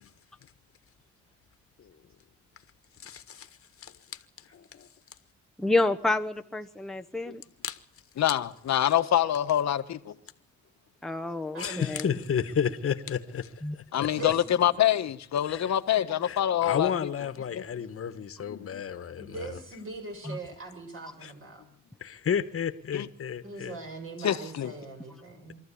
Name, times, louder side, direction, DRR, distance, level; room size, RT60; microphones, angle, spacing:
voice 1, 3.0-3.5 3.8-4.9 7.6-7.8 11.6-14.1 15.4-15.7 16.2-19.6 21.2-21.3 22.0-23.8, left 8 dB, 45° left, 1.6 m, -32 dB
voice 2, 5.6-7.4 11.0-12.0 13.6-13.8 20.3-20.4, left 2 dB, ahead, 1.1 m, -28 dB
voice 3, 8.2-10.1 13.9-16.9 17.5-17.6 18.5-18.8 22.9-23.1 24.2-24.7, left 11 dB, 60° left, 1.4 m, -26 dB
voice 4, 11.5-11.9 14.1-14.7 15.6-15.7 17.7-17.8 19.2-21.6 23.4-25.6, right 3 dB, 45° right, 7.4 m, -41 dB
24.0 x 14.0 x 8.6 m
cardioid pair, 90°, 30 cm